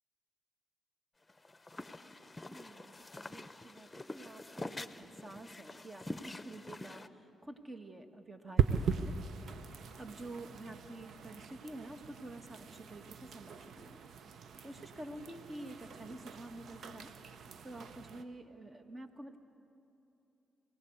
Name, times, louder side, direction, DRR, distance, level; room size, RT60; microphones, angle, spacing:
sound 1, 1.3-7.1, left 2 dB, 20° left, 0.9 m, -46 dB
voice 1, 2.5-9.1 9.9-14.0 14.6-17.1 17.6-19.4, right 1 dB, 30° right, 6 dB, 2.0 m, -49 dB
sound 2, 8.6-18.2, right 7 dB, 65° right, 0.9 m, -39 dB
24.0 x 17.5 x 8.2 m, 2.9 s
hypercardioid pair, 50°, 0 cm